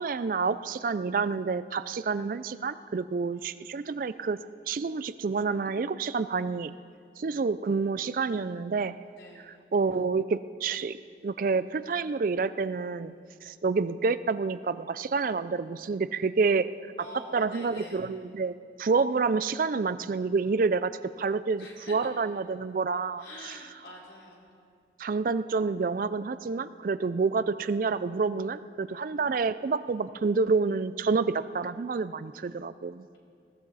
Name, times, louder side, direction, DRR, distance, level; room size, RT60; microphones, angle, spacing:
voice 1, 0.0-4.4 4.7-6.8 7.2-9.0 9.7-11.0 11.2-13.1 13.4-16.7 17.3-23.5 25.0-33.1, right 4 dB, 50° right, 14 dB, 0.4 m, -28 dB
voice 2, 9.2-9.5 17.0-18.1 21.6-22.1 23.2-24.5 28.9-29.4, left 1 dB, 80° left, -4 dB, 3.8 m, -46 dB
20.5 x 15.0 x 4.1 m, 2.2 s
head